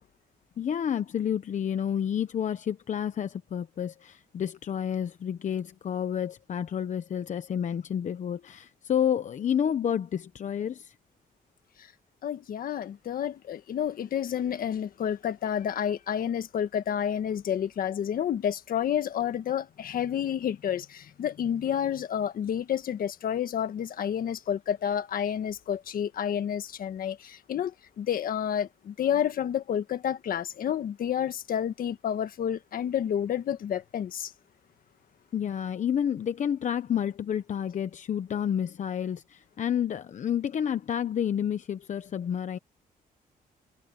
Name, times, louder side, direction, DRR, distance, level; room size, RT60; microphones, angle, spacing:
voice 1, 0.6-10.9 35.3-42.6, left 9 dB, 55° left, 0.9 m, -30 dB
voice 2, 12.2-34.3, left 9 dB, 70° left, 1.6 m, -30 dB
cardioid pair, 105°, 16 cm